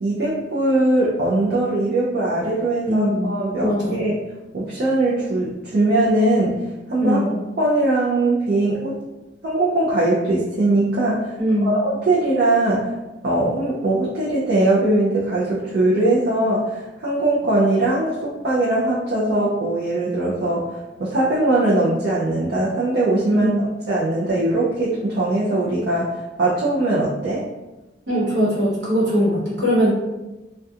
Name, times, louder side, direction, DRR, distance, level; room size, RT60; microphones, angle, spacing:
voice 1, 0.0-4.1 4.5-7.3 7.6-9.0 9.4-11.4 11.6-12.9 13.2-23.5 23.9-27.4, right 2 dB, 55° right, -7 dB, 0.4 m, -20 dB
voice 2, 2.9-4.0 7.0-7.4 11.4-11.7 23.3-23.6 28.1-29.9, equal, 70° right, -7 dB, 1.0 m, -21 dB
2.7 x 2.2 x 2.3 m, 1.1 s
head